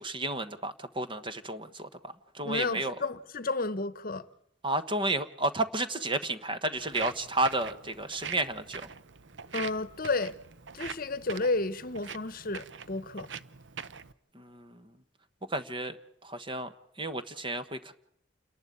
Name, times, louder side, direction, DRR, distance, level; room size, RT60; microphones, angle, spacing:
voice 1, 0.0-3.0 4.6-8.9 14.3-14.9 15.5-17.9, right 2 dB, 25° right, 1.2 m, -32 dB
voice 2, 2.4-4.3 9.5-10.4 10.7-13.3, left 3 dB, 50° left, 1.0 m, -32 dB
Walk footsteps, 6.8-14.1, right 6 dB, 75° right, 0.8 m, -43 dB
29.0 x 11.5 x 8.5 m
head